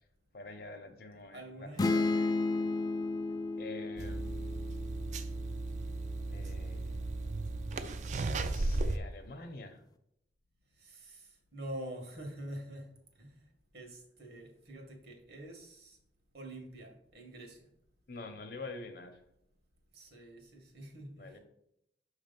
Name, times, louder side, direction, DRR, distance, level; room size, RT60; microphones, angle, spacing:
voice 1, 0.3-2.7 3.6-4.5 6.3-7.1 8.3-9.8 18.1-19.2 21.2-21.4, left 2 dB, 55° left, 7 dB, 0.8 m, -47 dB
voice 2, 1.3-2.1 3.1-3.4 10.8-12.9 13.2-13.5 13.7-16.0 16.3-17.6 19.9-21.4, right 1 dB, 65° right, 2 dB, 1.6 m, -46 dB
sound 1, 1.8-5.5, left 3 dB, 20° left, 0.3 m, -33 dB
sound 2, 4.0-9.0, right 2 dB, 45° right, 0.4 m, -35 dB
6.0 x 3.3 x 5.3 m, 0.78 s
head